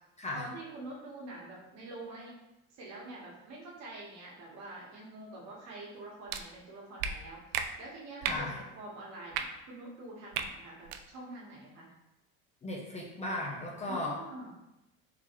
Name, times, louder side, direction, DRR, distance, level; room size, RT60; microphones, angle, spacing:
voice 1, 0.3-2.4 2.7-11.9 13.8-14.5, right 2 dB, 55° right, -4 dB, 1.3 m, -46 dB
sound 1, 6.3-6.4 7.0-7.1 7.5-7.7 8.2-8.4 9.3-9.4 10.3-10.5 10.8-11.0, right 8 dB, 80° right, 0.5 m, -33 dB
voice 2, 12.6-14.2, left 2 dB, 20° left, -1 dB, 0.5 m, -36 dB
3.8 x 3.0 x 3.0 m, 0.93 s
cardioid pair, 125°, 32 cm